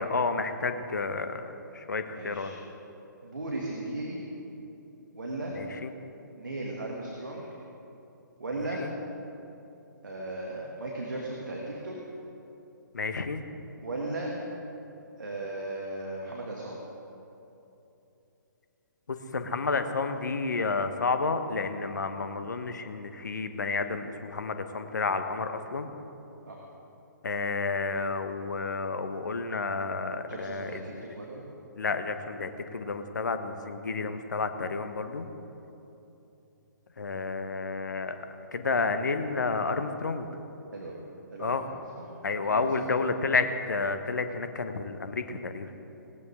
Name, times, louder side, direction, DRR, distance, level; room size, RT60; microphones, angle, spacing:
voice 1, 0.0-2.5 5.6-5.9 8.8-8.9 12.9-13.4 19.1-25.9 27.2-30.8 31.8-35.3 37.0-38.2 38.5-40.3 41.4-41.6 42.2-45.7, left 4 dB, 60° left, 8 dB, 1.2 m, -30 dB
voice 2, 2.2-2.5 3.2-4.2 5.1-5.5 6.4-7.5 8.4-8.8 10.0-11.9 13.8-14.4 15.2-16.8 26.5-26.6 30.3-31.4 40.7-40.9 41.3-41.7 42.0-42.1 42.4-42.9, right 2 dB, 65° right, -2 dB, 2.3 m, -36 dB
19.0 x 18.5 x 3.7 m, 2.9 s
figure-of-eight pair, 130°, 11 cm